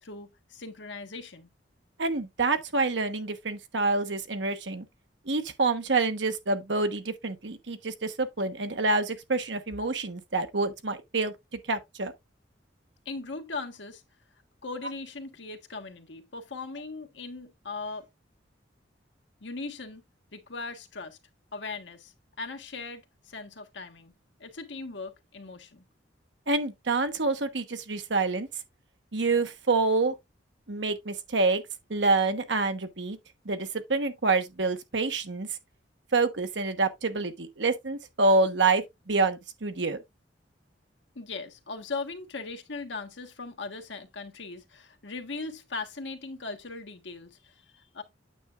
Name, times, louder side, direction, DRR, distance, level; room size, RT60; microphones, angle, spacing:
voice 1, 0.0-1.5 13.0-14.0 14.6-18.0 19.4-20.0 20.3-21.2 21.5-24.1 24.4-25.8 41.1-48.0, left 3 dB, 80° left, 1.4 m, -39 dB
voice 2, 2.0-4.8 5.3-12.1 26.5-28.5 29.1-30.2 30.7-31.6 31.9-33.2 33.4-35.5 36.1-40.0, right 3 dB, 75° right, 1.2 m, -27 dB
9.0 x 6.7 x 2.4 m
head